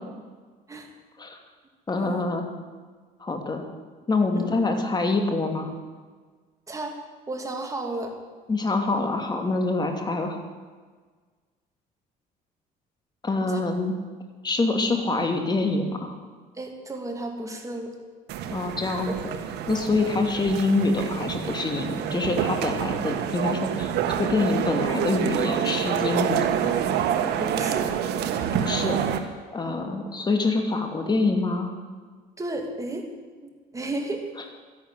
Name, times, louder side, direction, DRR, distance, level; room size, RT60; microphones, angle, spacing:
voice 1, 1.9-2.5 3.2-3.6 4.1-5.7 8.5-10.4 13.2-14.0 14.4-16.1 18.5-19.1 19.7-23.9 24.2-26.7 28.5-29.0 29.5-31.7, left 3 dB, 25° left, 4 dB, 2.7 m, -25 dB
voice 2, 6.7-7.0 7.3-8.1 13.5-13.6 16.5-17.9 19.3-19.4 25.6-25.8 27.4-27.9 29.6-29.9 32.4-33.1 33.4-34.3, right 2 dB, 20° right, 3 dB, 2.9 m, -33 dB
sound 1, 18.3-29.2, right 9 dB, 80° right, 1.4 m, -27 dB
13.0 x 11.5 x 9.4 m, 1.5 s
cardioid pair, 110°, 17 cm